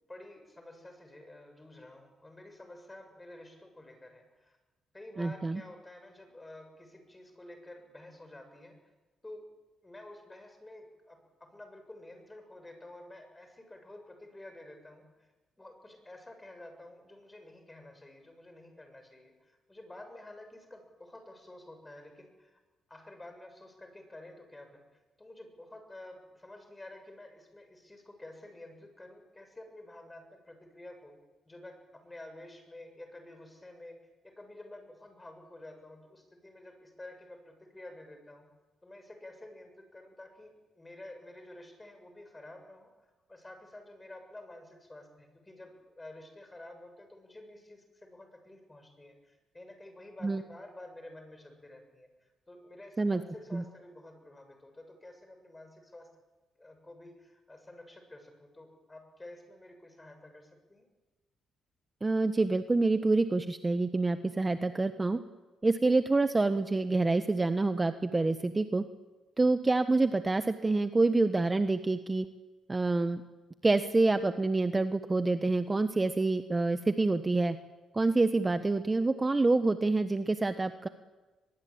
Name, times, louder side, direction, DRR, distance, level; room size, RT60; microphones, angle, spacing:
voice 1, 0.0-4.5 4.9-8.9 9.2-9.4 9.8-15.3 15.6-22.6 22.9-24.8 25.2-31.1 31.5-38.5 38.8-42.9 43.3-56.1 56.6-60.9, left 1 dB, 15° left, 5 dB, 7.3 m, -50 dB
voice 2, 5.2-5.6 50.2-50.4 53.0-53.2 53.5-53.6 62.0-65.2 65.6-68.8 69.4-72.3 72.7-73.2 73.6-77.6 77.9-80.9, right 3 dB, 20° right, 9 dB, 1.2 m, -27 dB
23.0 x 22.5 x 8.8 m, 1.2 s
cardioid pair, 90°, 0 cm